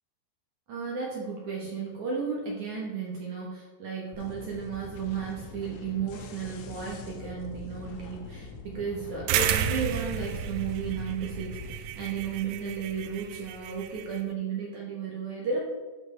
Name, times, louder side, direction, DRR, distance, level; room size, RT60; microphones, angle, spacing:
voice 1, 0.7-15.6, right 6 dB, 60° right, -3 dB, 2.0 m, -34 dB
sound 1, 4.1-11.8, left 5 dB, 80° left, 2.7 m, -44 dB
sound 2, 5.0-12.4, equal, 45° right, 2.5 m, -50 dB
sound 3, 9.3-14.2, right 9 dB, 85° right, 2.8 m, -32 dB
13.5 x 4.8 x 4.4 m, 1.3 s
omnidirectional pair, 5.3 m